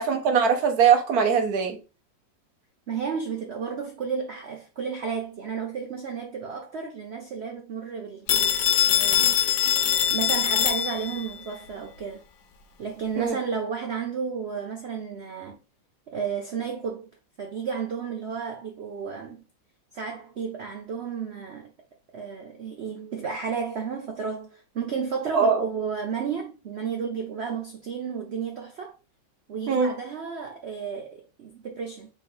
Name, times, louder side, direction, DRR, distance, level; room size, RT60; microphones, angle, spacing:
voice 1, 0.0-1.8 13.2-13.4 25.3-25.6 29.7-29.9, right 6 dB, 60° right, 1.2 m, -21 dB
voice 2, 2.9-9.4 10.1-12.2 12.8-15.6 16.1-17.1 17.4-19.4 19.9-21.7 22.1-28.9 29.5-32.1, right 6 dB, 75° right, 0.6 m, -32 dB
Telephone, 8.3-11.3, left 10 dB, 85° left, 1.5 m, -22 dB
3.6 x 3.3 x 4.2 m
omnidirectional pair, 2.0 m